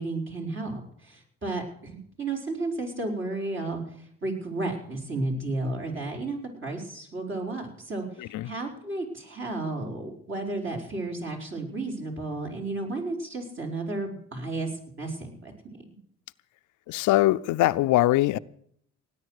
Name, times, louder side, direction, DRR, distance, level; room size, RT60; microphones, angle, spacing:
voice 1, 0.0-14.7 15.0-15.8, right 2 dB, 40° right, 4.9 m, -33 dB
voice 2, 8.2-8.5 16.9-18.4, left 16 dB, 80° left, 0.5 m, -22 dB
18.0 x 10.0 x 6.5 m
cardioid pair, 90°, 30 cm